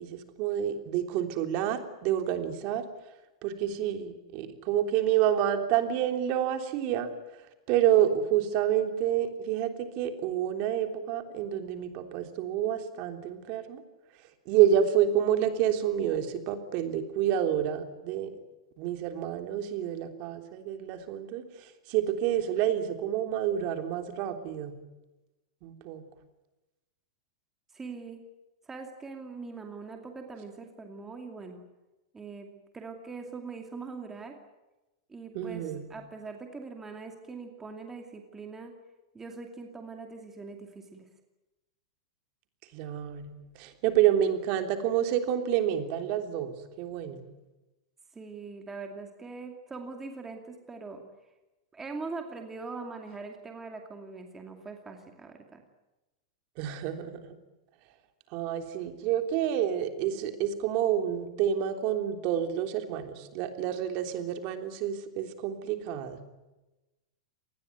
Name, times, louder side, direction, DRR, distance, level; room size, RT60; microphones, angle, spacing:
voice 1, 0.0-2.8 3.4-7.1 7.7-13.8 14.5-18.3 18.8-24.8 25.6-26.0 35.3-35.8 42.7-47.2 56.6-57.4 58.3-66.2, right 10 dB, 40° right, 7 dB, 3.3 m, -28 dB
voice 2, 27.7-28.2 28.6-31.6 32.1-34.4 35.1-38.7 39.1-41.1 48.1-51.0 51.7-55.6, right 4 dB, 10° right, 4 dB, 2.5 m, -42 dB
26.5 x 20.0 x 9.5 m, 1.0 s
supercardioid pair, 155°, 3 cm